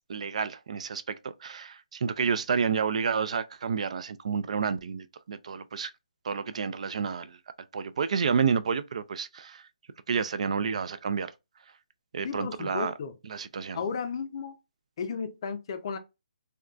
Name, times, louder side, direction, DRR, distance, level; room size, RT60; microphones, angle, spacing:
voice 1, 0.1-5.9 6.2-7.4 7.7-9.6 10.1-11.3 12.1-12.9 13.3-13.8, right 6 dB, 55° right, 0.3 m, -30 dB
voice 2, 12.2-13.2 13.7-14.6 15.0-16.0, left 6 dB, 35° left, 0.4 m, -34 dB
3.6 x 2.2 x 2.3 m
hypercardioid pair, 165°, 4 cm